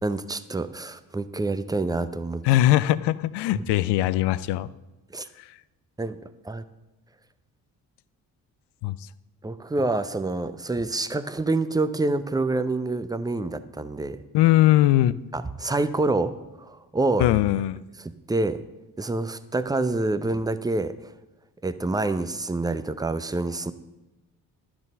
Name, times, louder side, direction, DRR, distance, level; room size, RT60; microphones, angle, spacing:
voice 1, 0.0-2.4 5.1-5.3 6.0-6.2 6.4-6.6 9.4-14.2 15.3-16.3 16.6-17.4 18.0-18.6 19.0-20.9 21.6-23.7, right 2 dB, 10° right, 13 dB, 0.6 m, -27 dB
voice 2, 2.4-4.7 8.8-9.0 14.3-15.2 17.2-17.8, left 15 dB, 60° left, 18 dB, 0.6 m, -20 dB
12.0 x 6.1 x 5.4 m, 1.0 s
hypercardioid pair, 40°, 48 cm